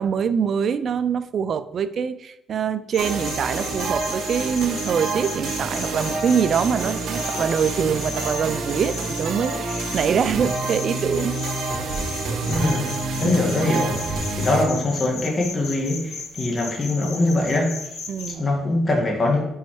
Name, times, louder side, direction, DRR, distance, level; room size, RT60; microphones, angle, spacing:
voice 1, 0.0-11.4 13.2-13.6 18.1-18.5, right 7 dB, 55° right, 13 dB, 0.4 m, -24 dB
sound 1, 2.9-18.3, left 4 dB, 65° left, 1.3 m, -36 dB
sound 2, 3.0-14.6, right 3 dB, 80° right, 1.1 m, -28 dB
voice 2, 12.5-12.9 13.2-17.9 18.3-19.5, left 2 dB, 35° left, 0 dB, 1.6 m, -23 dB
5.3 x 4.7 x 4.7 m, 0.82 s
cardioid pair, 90°, 0 cm